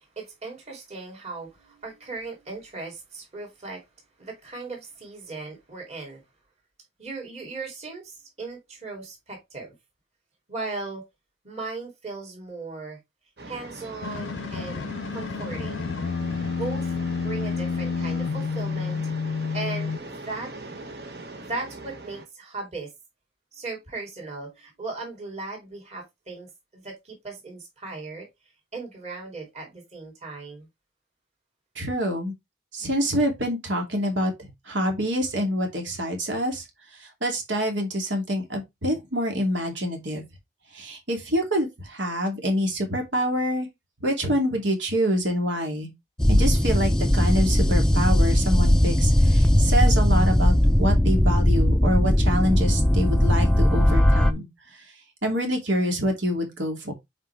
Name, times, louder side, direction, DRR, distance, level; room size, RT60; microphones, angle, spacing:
voice 1, 0.0-3.8 4.2-6.2 7.0-9.7 10.5-11.1 11.4-13.0 13.5-15.9 16.5-19.0 19.5-20.5 21.4-22.9 23.5-28.3 28.7-30.7, right 3 dB, 35° right, 2.9 m, -37 dB
sound 1, 13.4-22.3, right 2 dB, 55° right, 1.2 m, -41 dB
sound 2, 14.0-20.0, left 5 dB, 80° left, 0.4 m, -29 dB
voice 2, 31.7-32.3 32.7-36.6 37.0-40.2 40.7-43.7 44.0-45.9 46.3-54.8 55.2-56.9, equal, 75° right, 2.6 m, -26 dB
sound 3, 46.2-54.3, left 1 dB, 5° left, 0.5 m, -19 dB
7.5 x 4.6 x 3.3 m
head